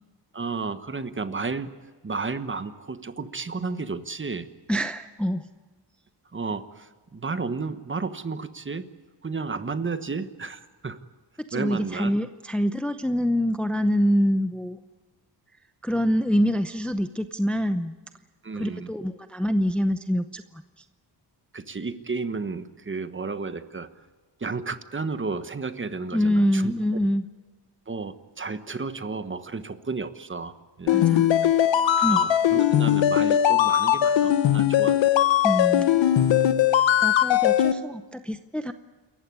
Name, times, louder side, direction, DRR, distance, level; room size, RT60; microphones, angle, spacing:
voice 1, 0.3-1.7 2.0-4.5 6.3-8.9 9.2-11.0 11.5-12.1 18.4-18.9 21.5-23.9 24.4-26.7 27.9-31.0 32.1-35.0, right 4 dB, 25° right, 11 dB, 1.3 m, -32 dB
voice 2, 4.7-5.5 11.5-14.8 15.8-17.9 18.5-20.8 26.1-27.2 30.9-31.4 32.0-32.2 35.4-35.9 37.0-38.7, equal, 5° left, 10 dB, 0.7 m, -25 dB
sound 1, 30.9-37.7, left 11 dB, 85° left, 1.2 m, -20 dB
28.0 x 15.0 x 9.6 m, 1.3 s
cardioid pair, 115°, 43 cm